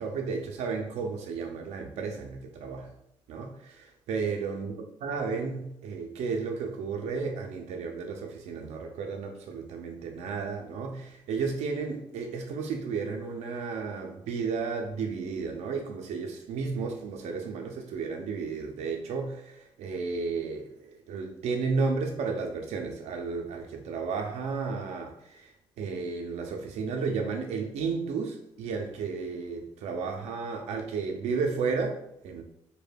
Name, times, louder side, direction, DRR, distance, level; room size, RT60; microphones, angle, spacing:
voice 1, 0.0-2.9 3.3-32.4, right 4 dB, 80° right, 0.4 m, -33 dB
2.2 x 2.1 x 3.2 m
cardioid pair, 75°, 11 cm